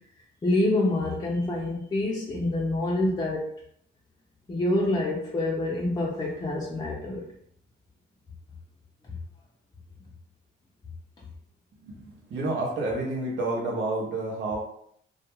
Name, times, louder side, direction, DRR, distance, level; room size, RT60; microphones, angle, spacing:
voice 1, 0.4-3.5 4.5-7.3, left 1 dB, 20° left, -3 dB, 0.5 m, -26 dB
voice 2, 11.8-14.6, right 2 dB, 70° right, -2 dB, 0.7 m, -29 dB
2.3 x 2.1 x 3.0 m, 0.66 s
cardioid pair, 90°, 20 cm